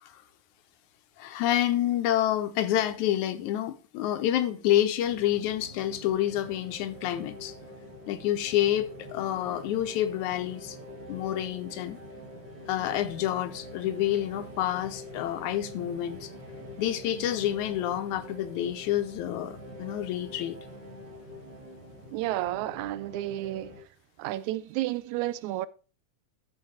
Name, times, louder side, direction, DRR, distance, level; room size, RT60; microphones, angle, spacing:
voice 1, 1.2-7.5 8.1-10.8 11.1-12.0 12.7-16.3 16.8-20.6, left 12 dB, 85° left, 2.2 m, -28 dB
sound 1, 5.0-23.8, left 1 dB, 40° right, 2.2 m, -45 dB
voice 2, 22.1-23.7 24.2-25.7, right 15 dB, 80° right, 1.9 m, -31 dB
13.0 x 4.6 x 4.1 m
omnidirectional pair, 3.4 m